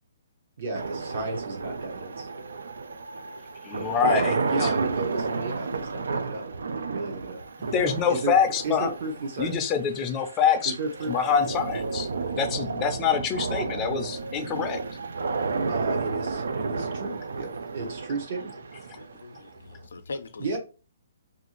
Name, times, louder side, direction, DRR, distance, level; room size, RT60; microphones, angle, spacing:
voice 1, 0.6-2.3 4.1-6.4 6.7-7.4 8.1-8.3 8.6-9.6 10.6-11.1 15.7-17.5 17.7-18.5 20.4-20.6, right 3 dB, 50° right, 0.7 m, -33 dB
sound 1, 0.7-19.8, right 4 dB, 85° right, 0.3 m, -32 dB
voice 2, 3.6-4.4 4.6-4.7 7.6-8.9 9.4-10.7 11.1-12.1 12.4-14.8, left 7 dB, 20° left, 0.4 m, -25 dB
voice 3, 19.0-20.6, left 3 dB, 85° left, 0.4 m, -41 dB
2.5 x 2.4 x 2.9 m
hypercardioid pair, 160°, 0 cm